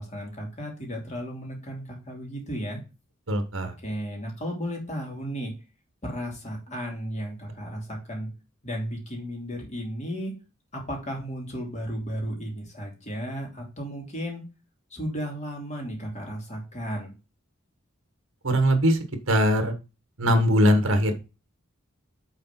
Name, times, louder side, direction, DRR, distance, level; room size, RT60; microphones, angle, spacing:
voice 1, 0.0-2.8 3.8-5.5 6.0-8.3 8.6-10.3 10.7-14.4 14.9-17.1, equal, 35° left, 0 dB, 2.6 m, -34 dB
voice 2, 3.3-3.7 18.4-19.0 19.3-19.7 20.2-21.1, equal, 70° right, 7 dB, 1.5 m, -21 dB
6.6 x 4.0 x 5.9 m, 0.29 s
head